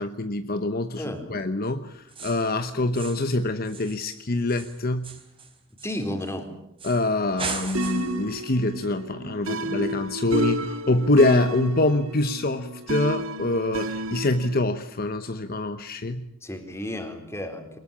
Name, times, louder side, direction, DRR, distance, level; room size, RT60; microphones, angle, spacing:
voice 1, 0.0-5.2 6.8-16.3, left 2 dB, 45° left, 9 dB, 1.0 m, -25 dB
sound 1, 2.1-2.6 2.9-3.3 3.6-6.3 6.8-7.1 7.4-8.2, right 4 dB, 25° right, 4.2 m, -37 dB
voice 2, 5.8-6.5 16.4-17.8, left 1 dB, 15° left, 5 dB, 4.0 m, -32 dB
sound 2, 7.7-14.6, right 1 dB, 75° right, 1.9 m, -31 dB
23.5 x 20.5 x 8.7 m, 0.81 s
head